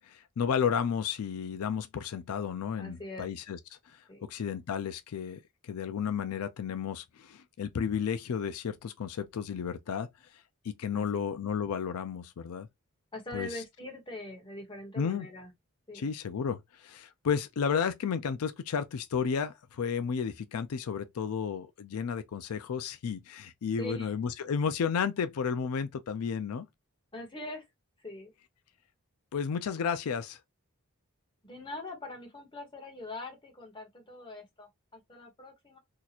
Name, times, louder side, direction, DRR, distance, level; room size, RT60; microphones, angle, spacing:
voice 1, 0.0-3.6 3.9-10.1 10.6-12.7 13.3-13.6 15.0-15.3 15.9-26.7 29.3-30.4, left 6 dB, 85° left, 0.4 m, -32 dB
voice 2, 2.8-3.3 4.1-4.2 10.9-11.2 13.1-15.5 15.9-16.1 23.8-24.1 27.1-27.6 28.0-28.3 31.4-35.8, left 1 dB, 20° left, 1.2 m, -43 dB
2.8 x 2.4 x 4.1 m
head